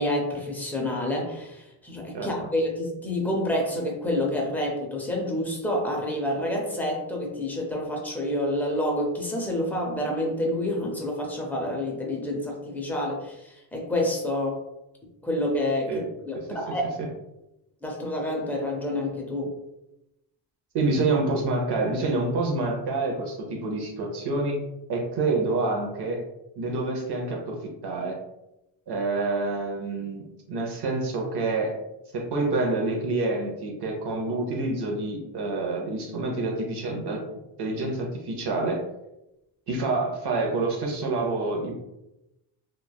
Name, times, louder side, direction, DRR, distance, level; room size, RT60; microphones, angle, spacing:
voice 1, 0.0-14.6 15.2-16.9 17.8-19.5, left 1 dB, 5° left, -1 dB, 0.4 m, -28 dB
voice 2, 20.7-24.6 24.9-26.2 26.6-28.2 28.9-30.2 30.5-31.7 32.1-37.2 37.6-38.8 39.7-41.7, right 3 dB, 55° right, 1 dB, 0.7 m, -27 dB
3.1 x 2.2 x 2.2 m, 0.91 s
cardioid pair, 125°, 48 cm